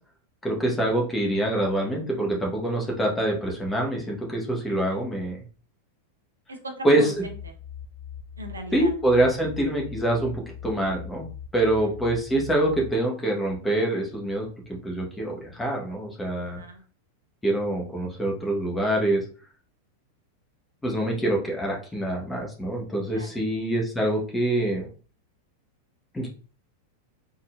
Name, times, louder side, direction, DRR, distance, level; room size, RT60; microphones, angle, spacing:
voice 1, 0.4-5.4 6.8-7.1 8.7-11.3 11.5-16.6 17.4-19.2 20.8-24.9 26.1-26.3, right 1 dB, 10° left, -1 dB, 1.4 m, -25 dB
voice 2, 6.5-7.5 8.4-8.9 11.6-11.9 16.3-16.8 23.1-23.4, right 2 dB, 75° right, 4 dB, 0.8 m, -39 dB
sound 1, 7.1-12.9, left 8 dB, 65° left, 0.5 m, -41 dB
4.3 x 3.8 x 2.6 m, 0.39 s
figure-of-eight pair, 90°, 0 cm